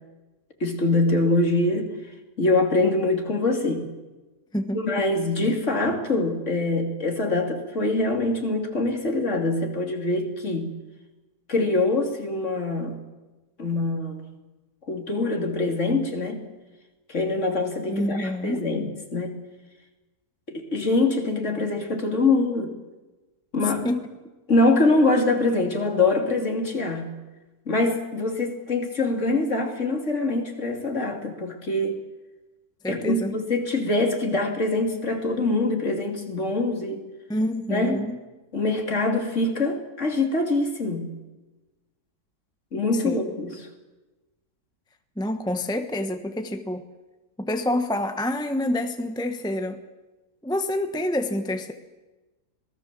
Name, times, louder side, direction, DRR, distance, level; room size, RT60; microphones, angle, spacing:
voice 1, 0.6-1.9 2.4-3.9 4.7-10.7 11.5-13.0 13.6-14.2 14.9-16.5 17.1-19.3 20.5-22.7 23.5-23.8 24.5-27.1 27.7-32.0 32.9-37.0 37.7-38.0 38.5-41.1 42.7-43.7, left 2 dB, 45° left, 3 dB, 3.3 m, -24 dB
voice 2, 17.9-18.6 23.8-24.0 32.8-33.3 37.3-38.2 42.9-43.2 45.2-46.8 47.4-49.8 50.4-51.7, left 1 dB, 5° left, 7 dB, 1.0 m, -27 dB
26.5 x 18.5 x 7.6 m, 1.1 s
omnidirectional pair, 1.7 m